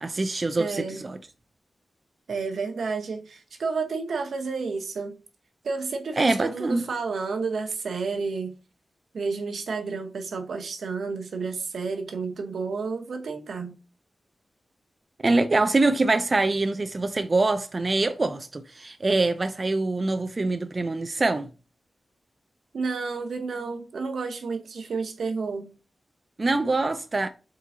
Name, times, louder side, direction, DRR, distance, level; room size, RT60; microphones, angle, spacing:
voice 1, 0.0-1.2 6.2-6.8 15.2-21.5 26.4-27.3, right 2 dB, 35° right, 0.3 m, -24 dB
voice 2, 0.6-1.0 2.3-5.1 5.6-8.5 9.1-13.7 22.7-25.7, right 4 dB, 85° right, 0.8 m, -31 dB
4.1 x 3.7 x 2.8 m
wide cardioid pair, 85°, 0 cm